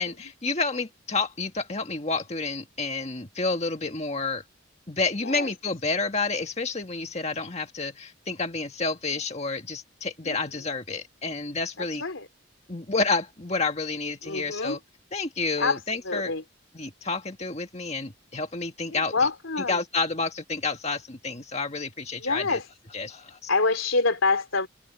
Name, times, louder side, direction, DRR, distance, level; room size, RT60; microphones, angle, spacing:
voice 1, 0.0-4.4 4.9-12.0 12.7-14.8 15.1-16.4 16.7-19.3 19.7-22.6 22.9-23.5, left 3 dB, 35° left, 1.8 m, -30 dB
voice 2, 14.2-14.8 15.6-15.8 16.1-16.4 18.9-19.8 22.2-22.6 23.5-24.7, left 3 dB, 85° left, 3.5 m, -26 dB
head